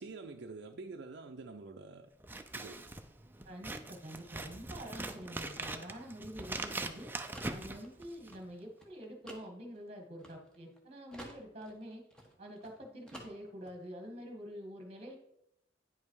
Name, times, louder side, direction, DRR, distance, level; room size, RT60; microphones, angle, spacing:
voice 1, 0.0-2.1 2.5-2.8, right 3 dB, 65° right, 0.5 m, -47 dB
Scissors, 2.2-8.5, right 2 dB, 10° right, 0.5 m, -42 dB
voice 2, 3.4-7.1 7.5-12.0 12.4-15.2, equal, 35° right, 1.6 m, -47 dB
sound 1, 5.9-10.8 11.1-12.8 13.1-13.8, equal, 5° left, 1.2 m, -53 dB
9.5 x 5.4 x 4.7 m
head